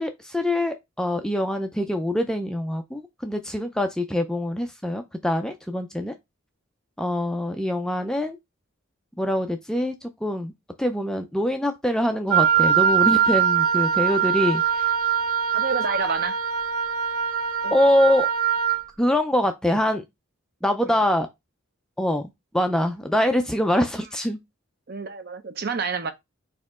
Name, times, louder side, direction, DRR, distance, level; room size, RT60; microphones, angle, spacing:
voice 1, 0.0-6.1 7.0-8.4 9.2-9.9 10.2-10.5 10.8-14.9 17.7-18.3 19.0-20.0 20.6-21.3 22.0-24.4, left 1 dB, 5° left, 0.3 m, -24 dB
Wind instrument woodwind instrument, 12.3-18.8, right 8 dB, 75° right, 0.9 m, -22 dB
voice 2, 15.5-16.4 17.6-17.8 20.9-21.0 24.9-26.1, right 4 dB, 45° right, 0.6 m, -29 dB
4.4 x 2.8 x 3.5 m
head